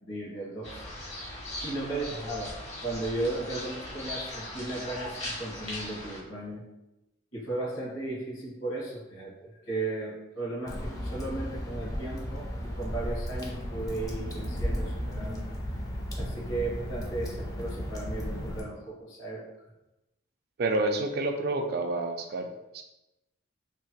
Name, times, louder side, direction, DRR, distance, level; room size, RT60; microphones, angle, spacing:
voice 1, 0.0-0.8 1.6-6.6 7.3-15.5 16.1-19.5, right 2 dB, 75° left, -5 dB, 1.2 m, -35 dB
sound 1, 0.6-6.2, left 1 dB, 35° left, 0.8 m, -39 dB
Water / Drip, 10.7-18.6, equal, 20° left, 0.4 m, -34 dB
voice 2, 20.6-22.5 22.7-22.8, right 2 dB, 50° right, 5 dB, 0.3 m, -28 dB
2.9 x 2.8 x 2.2 m, 0.96 s
head